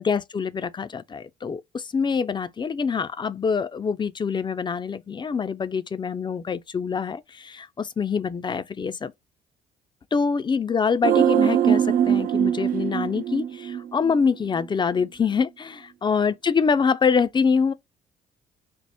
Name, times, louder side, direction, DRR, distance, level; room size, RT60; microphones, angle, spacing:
voice 1, 0.0-9.1 10.1-17.7, left 5 dB, 25° left, 0.4 m, -25 dB
sound 1, 11.0-14.3 14.6-14.7, right 9 dB, 45° right, 0.4 m, -22 dB
3.5 x 2.0 x 4.2 m
hypercardioid pair, 50°, 20 cm